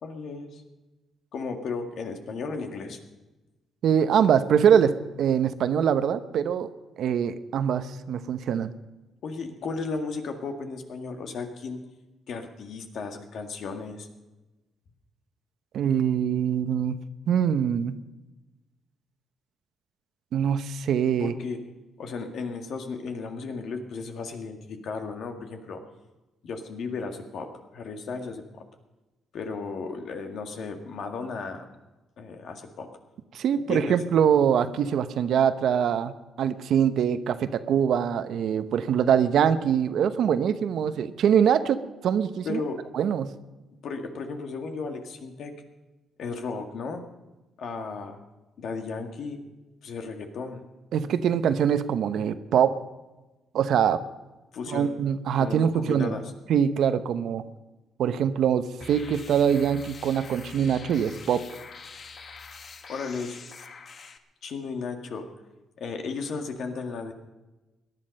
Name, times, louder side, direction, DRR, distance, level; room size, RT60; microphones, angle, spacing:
voice 1, 0.0-0.6 1.3-3.0 9.2-11.8 12.3-14.1 21.2-21.6 22.0-25.8 26.4-28.6 29.3-31.7 32.2-32.9 33.5-34.0 42.4-42.8 43.8-45.5 46.2-47.1 47.6-48.2 48.6-49.4 49.8-50.6 54.5-54.9 55.4-56.2 62.9-63.4 64.4-65.3 65.8-67.1, left 4 dB, 65° left, 5 dB, 1.9 m, -34 dB
voice 2, 3.8-6.7 7.0-8.7 15.7-17.0 17.3-18.0 20.3-21.3 33.3-36.1 36.4-42.6 42.9-43.3 50.9-52.8 53.5-54.0 54.7-56.1 56.5-57.5 58.0-61.5, right 8 dB, 70° right, 11 dB, 0.8 m, -23 dB
sound 1, 58.8-64.2, left 4 dB, 50° left, 1.2 m, -44 dB
18.0 x 11.0 x 5.4 m, 1.1 s
cardioid pair, 90°, 0 cm